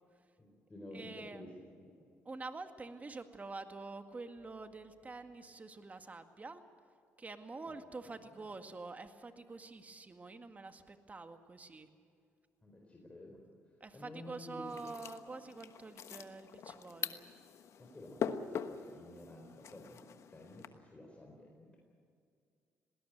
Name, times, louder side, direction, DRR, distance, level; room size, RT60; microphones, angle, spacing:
voice 1, 0.4-1.9 7.7-7.8 12.6-13.4 13.9-14.8 17.8-20.1 20.3-21.8, left 1 dB, 25° left, 0 dB, 4.3 m, -52 dB
voice 2, 0.9-1.6 2.3-6.6 7.2-11.9 13.8-17.4, right 3 dB, 30° right, 7 dB, 1.9 m, -47 dB
sound 1, 14.6-20.7, left 7 dB, 65° left, 1.2 m, -43 dB
20.0 x 18.0 x 9.4 m, 2.3 s
supercardioid pair, 65°, 5 cm